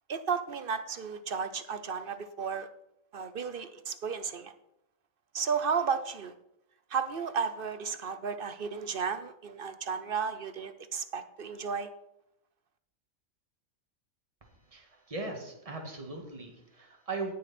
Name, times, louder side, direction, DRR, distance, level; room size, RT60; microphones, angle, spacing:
voice 1, 0.1-2.7 3.1-4.5 5.3-6.3 6.9-11.9, right 6 dB, 50° right, 11 dB, 0.7 m, -33 dB
voice 2, 14.6-17.3, right 3 dB, 25° right, 2 dB, 1.9 m, -39 dB
18.0 x 6.6 x 4.3 m, 0.80 s
omnidirectional pair, 1.5 m